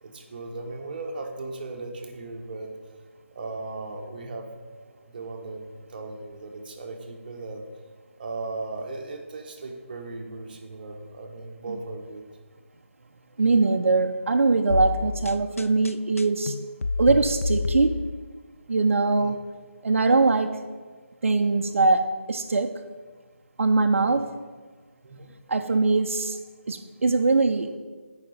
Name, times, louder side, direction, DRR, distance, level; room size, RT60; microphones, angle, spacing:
voice 1, 0.0-2.7 3.3-4.5 5.0-7.6 8.2-12.2 19.1-19.3 24.0-24.2 25.0-25.3, right 3 dB, 40° right, 3 dB, 1.0 m, -37 dB
voice 2, 13.4-16.6 17.0-18.0 18.7-19.4 19.8-20.6 21.2-22.8 23.6-24.3 25.5-26.4 26.7-27.7, right 3 dB, 70° right, 5 dB, 0.5 m, -22 dB
sound 1, 14.7-18.4, left 4 dB, 90° left, 0.4 m, -29 dB
10.0 x 4.9 x 4.2 m, 1.5 s
figure-of-eight pair, 160°, 7 cm